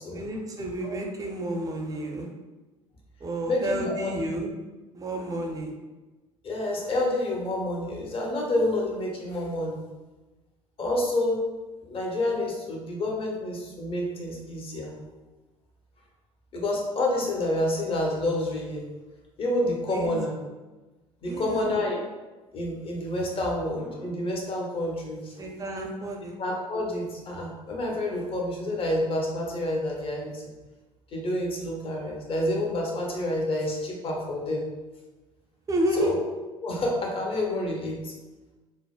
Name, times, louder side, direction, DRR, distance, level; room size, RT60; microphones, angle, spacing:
voice 1, 0.1-2.3 3.2-4.5 4.9-5.8 19.9-20.1 21.2-21.8 25.4-26.4 35.7-36.1, right 1 dB, 20° right, 1 dB, 0.5 m, -30 dB
voice 2, 3.5-4.1 5.1-5.4 6.4-9.8 10.8-11.4 11.8-15.0 16.5-18.8 19.4-20.4 21.2-22.0 22.5-25.3 26.4-30.4 31.1-34.6 35.9-36.2 36.6-38.1, left 1 dB, 30° left, -1 dB, 0.8 m, -28 dB
3.7 x 2.0 x 2.3 m, 1.2 s
figure-of-eight pair, 65°, 18 cm